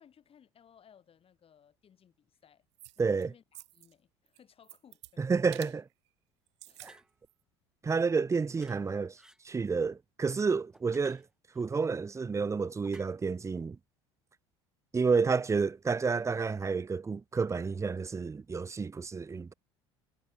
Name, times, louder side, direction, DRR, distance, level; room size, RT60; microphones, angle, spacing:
voice 1, 0.0-2.7 3.0-5.2 6.6-6.9, left 8 dB, 40° left, 6.2 m, -61 dB
sound 1, 2.8-3.2 3.5-3.9 4.3-5.1 5.5-5.8 6.5-7.0 7.3-7.4, right 19 dB, 80° right, 0.8 m, -49 dB
voice 2, 3.0-3.3 5.2-5.9 6.8-7.0 7.8-11.2 11.5-13.8 14.9-19.5, right 5 dB, 20° right, 0.7 m, -30 dB
sound 2, 6.8-7.1 8.5-8.8 9.2-9.4 10.7-11.7 12.8-13.1, right 1 dB, 5° right, 7.3 m, -56 dB
hypercardioid pair, 70°, 15 cm